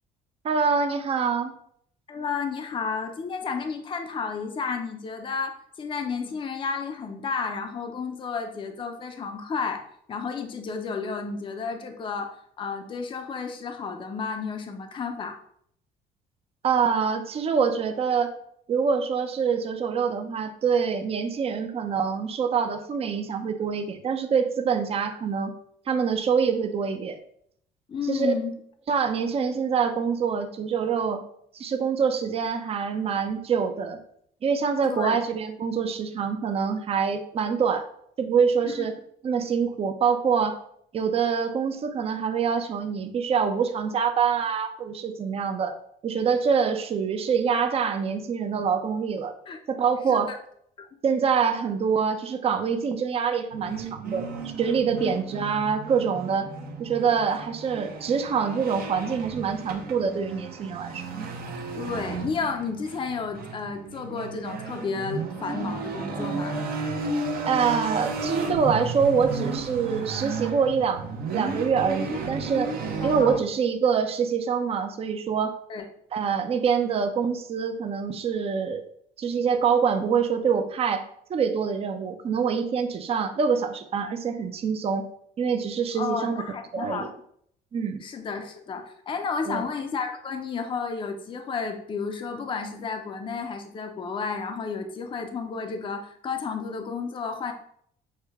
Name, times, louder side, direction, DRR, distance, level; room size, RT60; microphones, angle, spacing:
voice 1, 0.4-1.5 16.6-18.3 18.7-25.5 25.9-27.2 28.1-28.3 28.9-31.2 31.5-34.0 34.4-37.9 38.2-38.9 39.2-40.6 40.9-45.7 46.0-49.3 49.7-50.3 51.0-54.3 54.6-56.5 56.8-61.0 67.5-71.0 71.3-72.7 73.0-75.5 76.1-78.8 79.2-81.0 81.3-85.1 85.4-86.4 86.7-87.1 87.7-88.0 89.5-89.6, right 6 dB, 35° right, 7 dB, 0.5 m, -25 dB
voice 2, 2.1-15.4 27.9-28.5 34.8-35.2 38.7-38.9 49.5-49.6 50.1-50.4 50.8-50.9 55.0-55.1 61.8-66.6 73.0-73.4 75.7-75.9 85.9-87.1 88.0-97.5, left 5 dB, 30° left, 5 dB, 0.5 m, -32 dB
sound 1, 53.5-73.4, right 3 dB, 60° right, 0.8 m, -33 dB
6.4 x 2.2 x 3.4 m, 0.67 s
cardioid pair, 110°, 17 cm